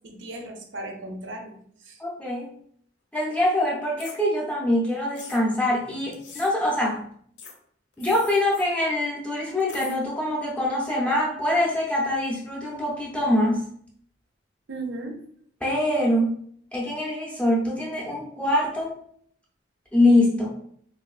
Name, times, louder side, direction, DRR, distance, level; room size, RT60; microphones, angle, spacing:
voice 1, 0.0-1.6 1.8-2.0 14.7-15.2, right 2 dB, 85° right, 3 dB, 0.6 m, -36 dB
voice 2, 2.0-2.5 3.1-7.0 8.0-13.6 15.6-16.4 16.7-19.0 19.9-20.5, left 1 dB, 5° left, -4 dB, 0.4 m, -24 dB
sound 1, 4.0-4.2 5.1-5.4 6.1-6.5 7.4-7.5 7.9-8.7 9.6-10.0, left 5 dB, 70° left, 0.5 m, -42 dB
3.0 x 2.4 x 2.3 m, 0.63 s
head